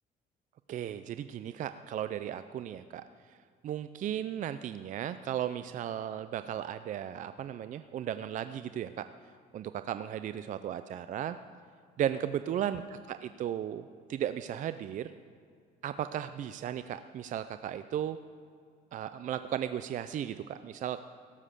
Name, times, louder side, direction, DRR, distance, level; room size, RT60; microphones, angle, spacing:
voice 1, 0.7-3.0 3.6-9.1 9.5-11.4 12.0-15.1 15.8-18.2 18.9-21.0, right 10 dB, 50° right, 12 dB, 0.4 m, -35 dB
17.0 x 7.3 x 6.6 m, 2.3 s
cardioid pair, 110°, 17 cm